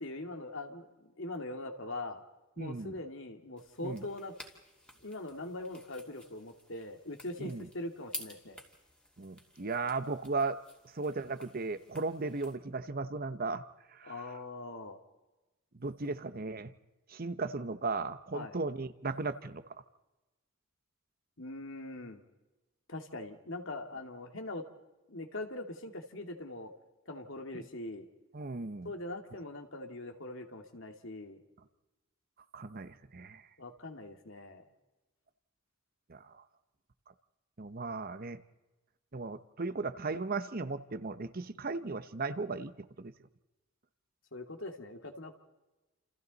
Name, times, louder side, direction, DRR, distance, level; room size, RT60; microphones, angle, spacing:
voice 1, 0.0-2.2 2.6-4.3 5.0-8.6 14.0-15.0 18.3-18.6 21.4-22.2 22.9-24.7 25.1-26.7 27.1-28.1 28.8-31.4 33.6-34.6 44.3-45.4, left 2 dB, 65° left, 5 dB, 2.3 m, -42 dB
voice 2, 2.6-3.0 3.8-4.0 7.4-7.7 9.2-10.6 10.9-13.6 14.0-14.1 15.8-16.7 17.1-19.6 27.5-27.6 28.3-28.9 32.5-33.4 36.1-36.4 37.6-38.4 39.1-43.1, right 3 dB, 45° right, 12 dB, 0.9 m, -36 dB
sound 1, 3.6-12.6, left 1 dB, 5° left, 2.6 m, -51 dB
29.0 x 28.5 x 4.1 m, 1.1 s
head